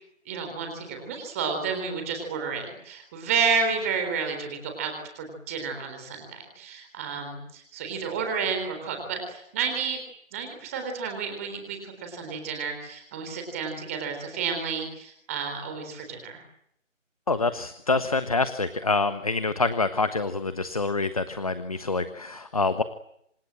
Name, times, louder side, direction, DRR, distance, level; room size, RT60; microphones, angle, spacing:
voice 1, 0.3-10.0 10.3-16.4, right 5 dB, 10° right, 5 dB, 3.8 m, -31 dB
voice 2, 17.3-22.8, left 3 dB, 30° left, 12 dB, 1.3 m, -26 dB
28.0 x 26.5 x 7.7 m, 0.74 s
figure-of-eight pair, 165°, 39 cm